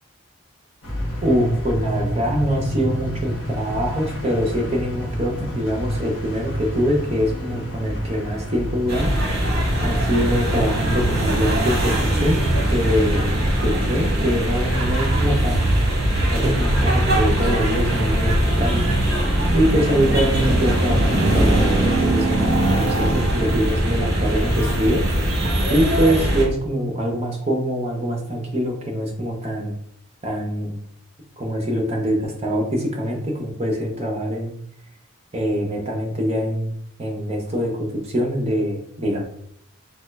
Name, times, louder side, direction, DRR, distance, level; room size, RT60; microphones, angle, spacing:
sound 1, 0.8-13.5, equal, 65° left, 0.8 m, -29 dB
voice 1, 1.2-9.1 9.8-12.4 12.7-15.7 16.3-18.8 19.5-25.0 25.7-29.7 30.2-30.8 31.4-34.5 35.3-36.7 37.0-39.2, equal, 30° right, 1 dB, 0.7 m, -24 dB
sound 2, 8.9-26.4, right 1 dB, 50° right, 1.0 m, -20 dB
3.4 x 2.2 x 3.3 m, 0.69 s
head